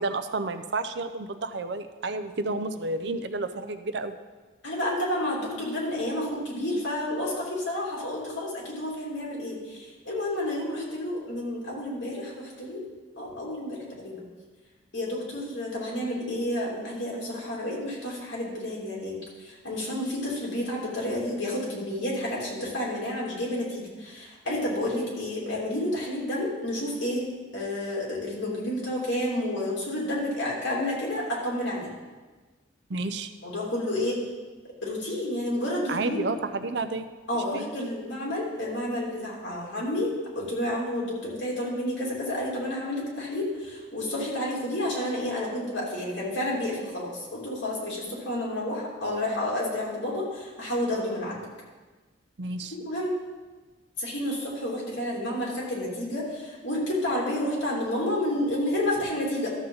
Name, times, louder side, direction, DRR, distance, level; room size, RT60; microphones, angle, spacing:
voice 1, 0.0-4.1 32.9-33.3 35.9-37.1 37.3-37.6 52.4-52.7, right 3 dB, 60° right, 9 dB, 0.5 m, -31 dB
voice 2, 4.6-12.8 13.2-14.3 14.9-27.3 27.5-31.9 33.4-34.2 34.8-36.2 37.3-51.4 52.7-53.1 54.0-59.5, left 1 dB, 65° left, -4 dB, 3.0 m, -30 dB
13.0 x 7.2 x 3.9 m, 1.3 s
head